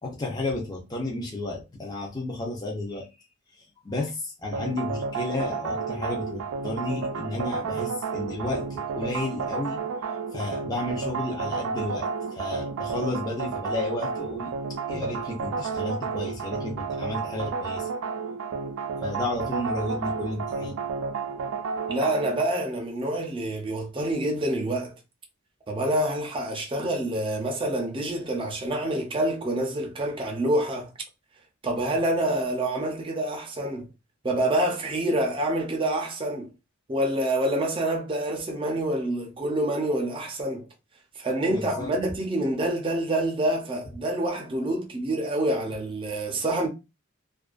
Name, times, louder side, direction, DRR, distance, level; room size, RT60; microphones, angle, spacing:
voice 1, 0.0-3.2 3.5-9.8 10.3-12.1 12.3-14.5 14.9-17.9 19.0-20.8 41.5-41.9, left 2 dB, 20° left, 0.5 m, -32 dB
sound 1, 4.5-22.4, right 5 dB, 85° right, 0.3 m, -31 dB
voice 2, 21.9-24.9 25.7-30.9 31.6-33.9 34.2-36.5 36.9-40.7 41.2-46.7, right 1 dB, 25° right, 0.5 m, -27 dB
2.4 x 2.2 x 2.4 m
head